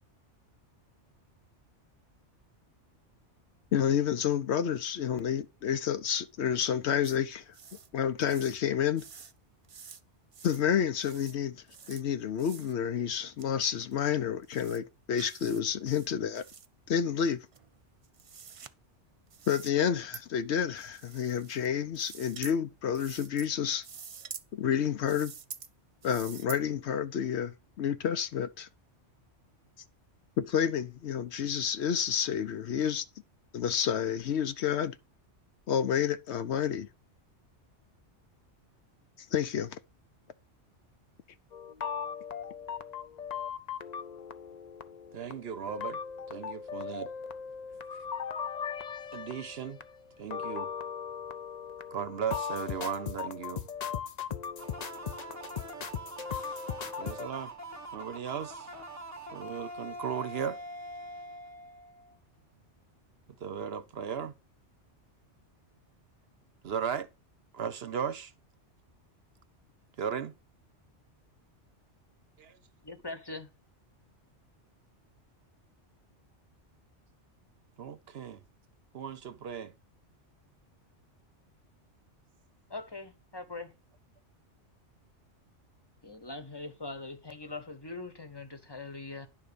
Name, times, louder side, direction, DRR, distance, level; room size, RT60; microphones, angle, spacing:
voice 1, 3.7-7.5 7.9-9.0 10.4-16.4 16.9-17.4 19.5-23.8 24.5-25.3 26.0-28.7 30.4-33.0 33.5-35.0 35.7-36.9 39.3-39.8, left 8 dB, 70° left, 0.9 m, -29 dB
sound 1, 7.0-7.2 7.5-7.9 8.2-8.6 9.0-9.3 9.6-10.0 10.3-10.6 10.9-11.3 11.7-12.0 12.4-12.7 13.4-13.5 13.9-14.0 14.4-14.8 15.1-15.6 15.9-16.7 17.5-18.7 19.3-19.7 20.1-20.2 20.8-21.7 21.9-22.6 22.9-23.5 23.8-24.4 25.0-25.7 26.0-26.6, right 6 dB, 45° right, 0.4 m, -47 dB
sound 2, 41.5-57.3, left 7 dB, 45° left, 0.6 m, -38 dB
voice 2, 45.1-46.0 46.3-47.1 49.1-49.8 50.2-50.7 51.9-53.7 57.0-57.5 57.9-58.7 59.3-60.6 63.4-64.3 66.6-67.1 67.5-68.3 70.0-70.3 72.4-72.5 77.8-78.4 78.9-79.7, right 7 dB, 60° right, 0.9 m, -36 dB
sound 3, 54.6-62.2, right 1 dB, 15° right, 0.8 m, -44 dB
voice 3, 72.8-73.5 82.7-83.7 86.0-89.3, left 3 dB, 25° left, 1.0 m, -42 dB
10.5 x 3.8 x 6.8 m
omnidirectional pair, 1.2 m